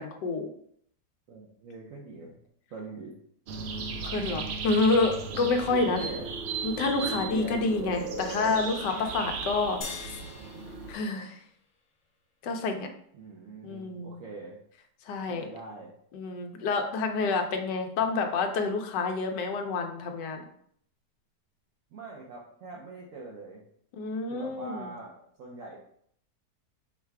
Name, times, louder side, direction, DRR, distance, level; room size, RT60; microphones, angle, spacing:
voice 1, 1.3-2.4 2.7-3.1 5.3-6.3 7.0-7.6 13.1-14.6 15.3-15.9 21.9-23.6 24.3-25.8, right 3 dB, 65° right, -2 dB, 0.9 m, -42 dB
sound 1, 3.5-10.9, right 4 dB, 80° right, 0.5 m, -36 dB
voice 2, 4.0-6.0 6.6-10.1 10.9-11.4 12.4-12.9 13.6-14.2 15.1-15.4 16.1-20.4 23.9-24.9, left 3 dB, 90° left, 5 dB, 1.3 m, -28 dB
sound 2, 9.8-12.4, left 4 dB, 55° left, 1.1 m, -44 dB
4.7 x 2.2 x 4.6 m, 0.66 s
omnidirectional pair, 1.8 m